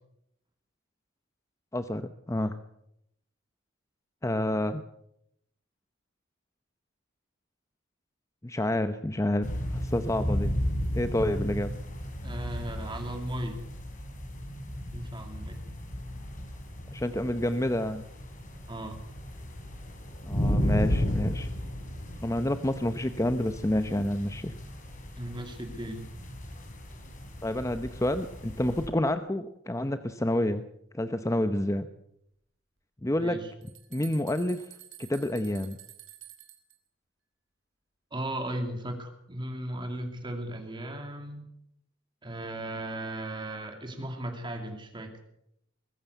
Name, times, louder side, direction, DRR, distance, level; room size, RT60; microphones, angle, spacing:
voice 1, 1.7-2.6 4.2-4.8 8.4-10.5 10.9-11.7 16.9-18.0 20.2-21.5 22.2-24.5 27.4-30.7 30.9-31.9 33.0-33.4 33.9-34.7 35.0-35.8, left 1 dB, 15° left, 10 dB, 0.8 m, -29 dB
sound 1, 9.4-28.9, equal, 45° left, 4.4 m, -34 dB
voice 2, 12.2-13.6 14.9-15.6 18.7-19.0 25.2-26.1 33.2-33.5 38.1-41.4 42.2-45.1, right 1 dB, 25° right, 5 dB, 2.4 m, -36 dB
sound 2, 33.2-36.7, right 13 dB, 75° right, 3.3 m, -50 dB
22.0 x 15.0 x 8.1 m, 0.78 s
head